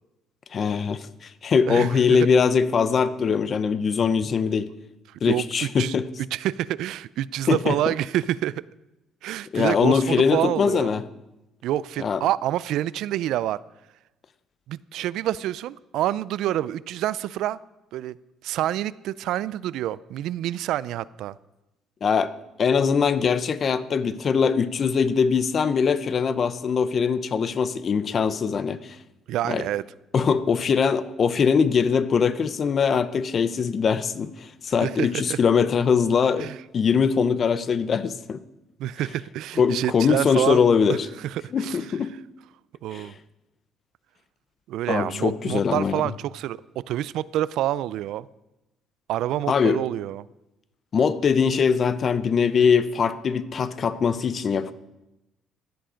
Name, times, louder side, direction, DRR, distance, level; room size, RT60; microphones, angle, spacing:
voice 1, 0.5-4.7 5.2-6.1 7.5-7.9 9.5-11.0 12.0-12.2 22.0-29.0 29.5-29.7 30.1-36.5 36.7-38.4 39.6-41.1 41.5-42.1 42.9-43.1 44.9-46.0 49.5-49.8 50.9-54.7, left 6 dB, 35° left, 14 dB, 0.6 m, -22 dB
voice 2, 1.7-2.2 5.1-6.0 6.3-8.6 9.2-10.9 11.6-13.6 14.7-17.6 17.9-18.2 18.4-21.4 29.3-29.8 34.8-35.4 36.4-36.6 38.8-40.6 40.9-41.8 42.8-43.1 44.7-48.3 49.1-50.2, right 13 dB, 70° right, 19 dB, 0.4 m, -27 dB
16.0 x 10.0 x 5.1 m, 0.96 s
cardioid pair, 165°, 0 cm